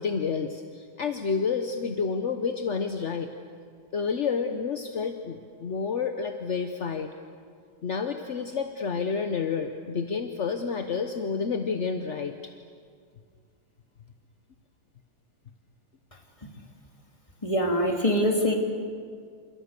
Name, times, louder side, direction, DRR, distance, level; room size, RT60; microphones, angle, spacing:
voice 1, 0.0-3.3 3.9-7.1 7.8-12.4, left 5 dB, 45° left, 6 dB, 1.0 m, -29 dB
voice 2, 17.4-18.6, equal, 15° left, 2 dB, 2.9 m, -23 dB
29.0 x 28.0 x 6.8 m, 2.2 s
omnidirectional pair, 2.4 m